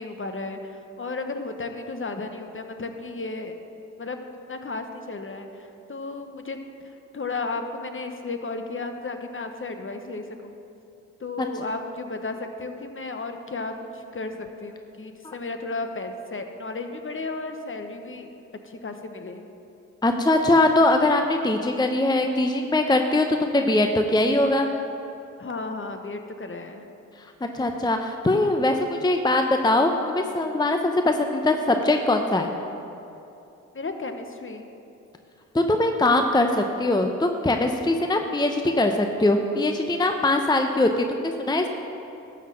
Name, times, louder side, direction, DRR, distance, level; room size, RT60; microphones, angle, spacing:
voice 1, 0.0-3.5 4.0-4.2 4.5-6.6 6.8-10.6 11.2-18.3 18.6-19.4 25.4-26.8 33.7-34.7, left 3 dB, 35° left, 6 dB, 1.1 m, -34 dB
voice 2, 20.0-24.7 27.5-32.5 35.5-41.7, left 2 dB, 10° left, 5 dB, 0.7 m, -22 dB
12.5 x 4.3 x 7.6 m, 2.8 s
hypercardioid pair, 40°, 37 cm